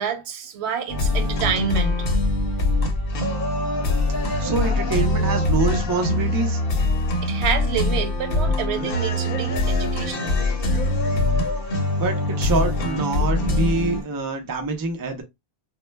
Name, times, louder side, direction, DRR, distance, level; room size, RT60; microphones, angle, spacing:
voice 1, 0.0-2.0 7.2-10.4, right 7 dB, 90° right, 0.9 m, -28 dB
sound 1, 0.9-14.0, left 2 dB, 65° left, 0.8 m, -23 dB
voice 2, 4.4-6.6 11.8-15.2, right 3 dB, 35° right, 0.3 m, -25 dB
2.1 x 2.1 x 3.1 m
omnidirectional pair, 1.1 m